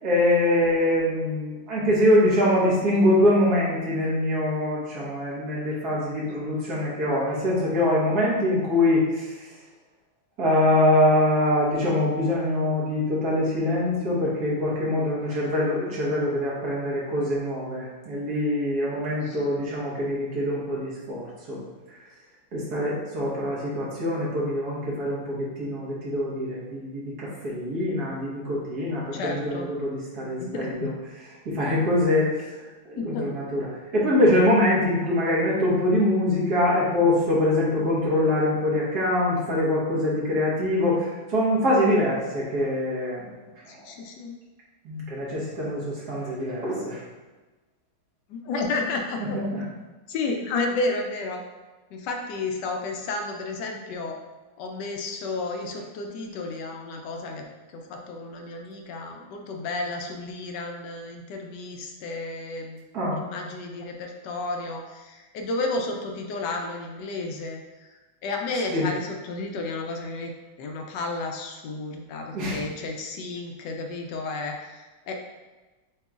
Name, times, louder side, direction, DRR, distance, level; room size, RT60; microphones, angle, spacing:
voice 1, 0.0-9.3 10.4-21.6 22.5-30.9 31.4-32.3 32.8-33.7 33.9-43.3 44.8-47.0 49.3-49.6 62.9-63.1 68.7-68.9 72.3-72.6, left 1 dB, 60° right, -6 dB, 1.8 m, -24 dB
voice 2, 29.1-29.7 30.4-30.9 33.0-33.3 43.7-44.3 48.3-49.4 50.1-51.4 51.9-54.2 54.6-62.8 63.1-67.9 68.2-70.3 70.6-75.2, left 3 dB, 75° left, 2 dB, 1.2 m, -32 dB
7.4 x 3.0 x 2.4 m, 1.2 s
omnidirectional pair, 2.0 m